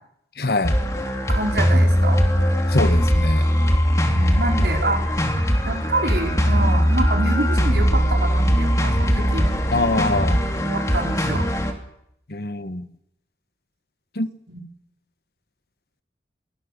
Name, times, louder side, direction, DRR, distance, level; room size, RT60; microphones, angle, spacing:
voice 1, 0.4-0.8 2.7-3.5 9.7-10.4 12.3-12.8 14.2-14.3, left 2 dB, 60° left, 12 dB, 1.2 m, -23 dB
sound 1, 0.6-11.7, equal, 20° left, 2.5 m, -20 dB
voice 2, 1.3-2.2 4.1-5.0 5.6-9.5 10.6-11.4 14.5-14.7, right 2 dB, 75° right, 2 dB, 4.8 m, -27 dB
27.5 x 20.0 x 6.7 m, 0.76 s
head